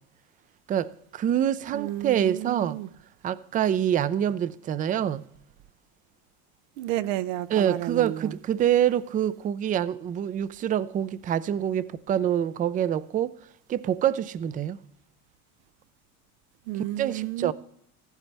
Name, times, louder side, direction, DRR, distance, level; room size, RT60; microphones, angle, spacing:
voice 1, 0.7-2.8 3.2-5.2 7.5-13.3 13.7-14.8 17.0-17.5, right 10 dB, 25° right, 0.4 m, -26 dB
voice 2, 1.7-2.9 6.8-8.3 16.7-17.5, right 14 dB, 85° right, 0.6 m, -31 dB
14.5 x 12.5 x 3.3 m
cardioid pair, 130°, 36 cm